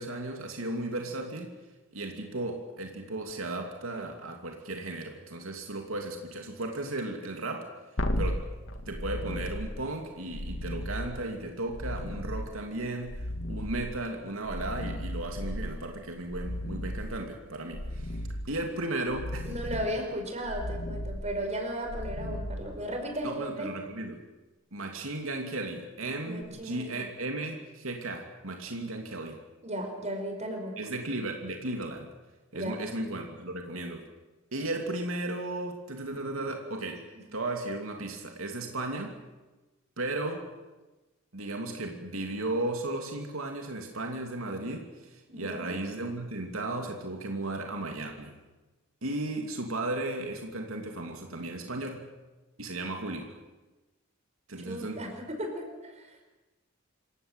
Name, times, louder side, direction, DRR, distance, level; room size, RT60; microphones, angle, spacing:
voice 1, 0.0-1.5 1.9-7.7 8.2-8.5 8.9-19.8 23.2-24.2 24.7-29.4 30.8-32.1 32.5-34.0 34.5-37.0 37.3-39.1 40.0-40.5 41.3-48.3 49.0-52.0 52.6-53.2 54.5-55.1, right 2 dB, 85° right, 3 dB, 2.8 m, -35 dB
sound 1, 8.0-23.3 26.4-26.5, left 1 dB, 65° left, 2.0 m, -36 dB
voice 2, 19.5-23.7 26.2-26.9 29.6-30.7 32.5-32.8 45.3-45.7 54.6-56.3, equal, 35° right, 3 dB, 5.2 m, -35 dB
27.0 x 15.5 x 9.1 m, 1.1 s
head